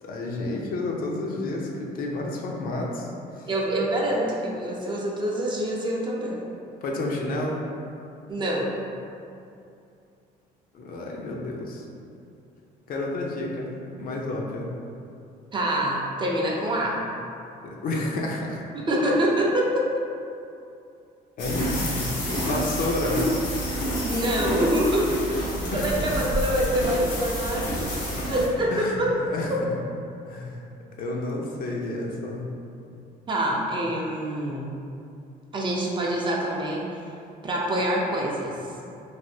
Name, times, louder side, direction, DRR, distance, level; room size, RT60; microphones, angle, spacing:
voice 1, 0.0-3.1 3.4-3.5 6.8-7.6 10.7-11.9 12.9-13.7 14.0-14.7 17.6-18.6 21.4-22.1 22.3-23.2 25.7-26.0 28.7-29.0 29.3-29.5 30.3-30.6 31.0-32.5, left 2 dB, 55° left, -1 dB, 0.5 m, -30 dB
voice 2, 3.5-6.4 8.3-8.7 15.5-17.0 18.7-19.8 24.0-25.4 25.7-27.9 28.2-29.1 29.5-29.6 33.3-34.7 35.5-37.0 37.4-38.6, right 1 dB, 30° right, -3 dB, 0.5 m, -25 dB
sound 1, 21.4-28.5, equal, 75° left, 0.9 m, -28 dB
3.3 x 2.5 x 2.7 m, 2.6 s
cardioid pair, 110°, 17 cm